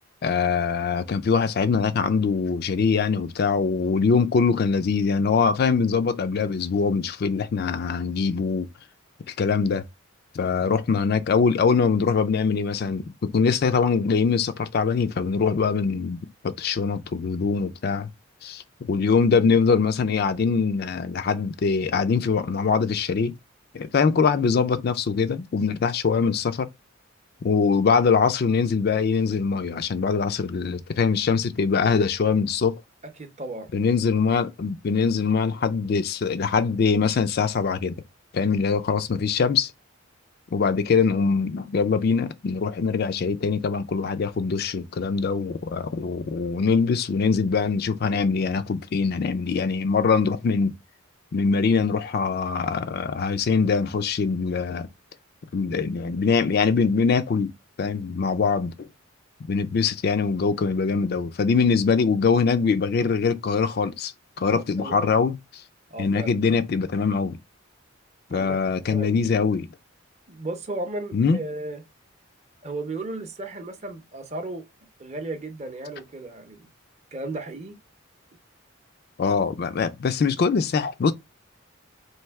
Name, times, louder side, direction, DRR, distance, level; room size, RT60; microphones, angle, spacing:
voice 1, 0.2-8.7 9.3-9.8 10.3-18.1 18.4-18.6 18.9-23.4 23.7-26.7 27.4-32.7 33.7-38.0 38.3-39.7 40.5-50.7 51.3-54.9 55.5-57.5 57.8-58.9 59.5-65.4 66.0-67.4 68.3-69.7 71.1-71.4 79.2-81.1, left 5 dB, 50° left, 0.4 m, -23 dB
voice 2, 33.2-33.7 64.5-65.1 65.9-66.4 68.3-68.6 68.9-69.2 70.3-71.8 72.6-74.7 75.0-76.7 77.1-77.8, right 2 dB, 35° right, 0.7 m, -34 dB
3.2 x 2.7 x 4.5 m
head